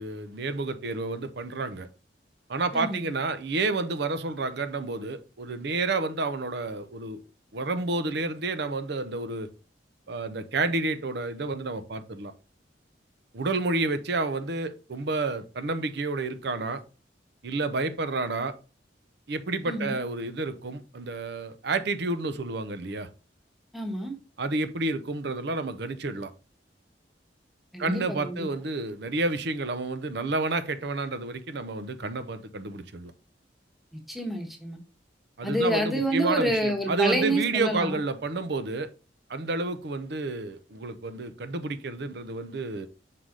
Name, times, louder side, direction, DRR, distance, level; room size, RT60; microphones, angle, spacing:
voice 1, 0.0-1.9 2.5-7.2 7.5-9.5 10.1-12.3 13.3-16.8 17.4-18.5 19.3-23.1 24.4-26.3 27.8-33.1 35.4-38.9 39.3-42.9, right 3 dB, 65° right, 0.7 m, -30 dB
voice 2, 2.7-3.0 19.7-20.0 23.7-24.1 27.7-28.5 34.1-34.8 35.4-38.0, right 1 dB, ahead, 1.1 m, -28 dB
5.8 x 4.8 x 3.8 m
head